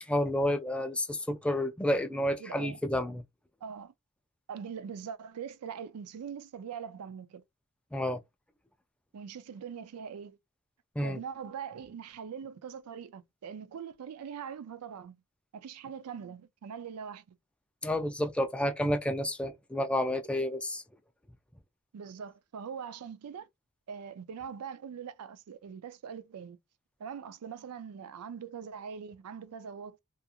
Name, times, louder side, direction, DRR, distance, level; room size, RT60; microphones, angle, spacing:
voice 1, 0.0-3.2 7.9-8.2 11.0-11.2 17.8-20.8, left 1 dB, 5° left, 0.3 m, -30 dB
voice 2, 2.4-2.8 3.6-3.9 4.5-7.4 9.1-10.4 11.0-15.2 15.5-17.2 21.9-23.5 23.9-26.6 27.0-30.0, right 7 dB, 85° right, 0.4 m, -42 dB
2.8 x 2.4 x 2.3 m
head